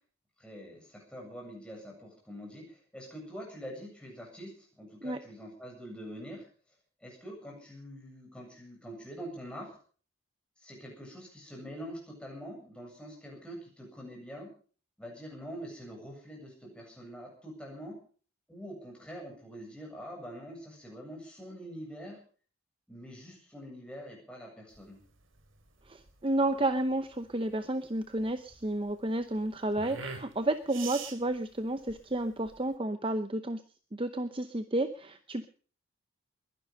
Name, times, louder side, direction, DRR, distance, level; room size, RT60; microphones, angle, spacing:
voice 1, 0.4-6.5 7.0-9.8 10.6-14.5 15.0-18.0 18.5-22.2 22.9-25.0, equal, 5° left, -1 dB, 7.9 m, -45 dB
sound 1, 24.7-32.7, right 5 dB, 60° right, 2.7 m, -46 dB
voice 2, 25.9-33.6 33.9-35.5, right 1 dB, 25° right, 10 dB, 0.7 m, -31 dB
21.5 x 11.5 x 5.5 m, 0.42 s
head